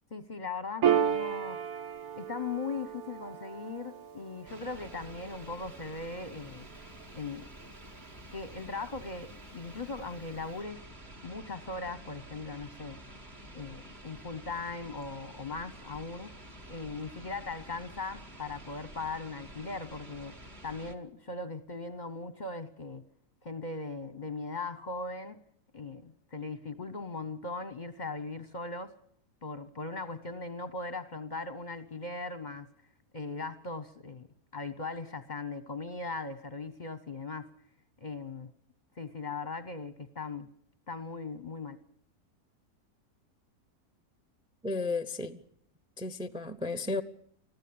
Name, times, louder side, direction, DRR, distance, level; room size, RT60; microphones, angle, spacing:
voice 1, 0.1-1.6 2.1-6.7 7.1-7.5 8.3-10.8 11.2-13.0 13.5-16.3 16.7-20.3 20.6-23.0 23.4-25.4 25.7-28.9 29.4-32.7 33.1-34.3 34.5-37.5 38.0-38.5 39.0-40.5 40.9-41.8, left 3 dB, 35° left, 0.7 m, -39 dB
Piano, 0.8-7.7, right 9 dB, 65° right, 1.4 m, -34 dB
sound 1, 4.5-20.9, right 1 dB, 30° right, 1.4 m, -49 dB
voice 2, 44.6-45.4 46.0-47.0, left 3 dB, 5° right, 0.4 m, -33 dB
21.0 x 14.5 x 8.6 m
omnidirectional pair, 1.8 m